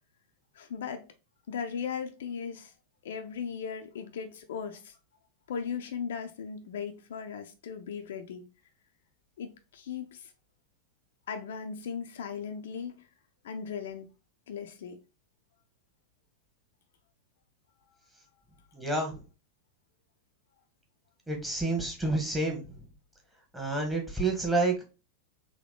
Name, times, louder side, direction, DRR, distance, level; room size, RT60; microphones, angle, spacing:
voice 1, 0.5-1.1 1.5-2.7 3.0-5.0 5.5-8.5 9.4-10.3 11.3-13.1 13.4-14.1 14.5-15.0, left 6 dB, 60° left, 0.5 m, -37 dB
voice 2, 18.7-19.2 21.3-22.6 23.5-24.8, right 2 dB, 5° right, 1.3 m, -29 dB
3.8 x 2.9 x 3.6 m
figure-of-eight pair, 90°, 0 cm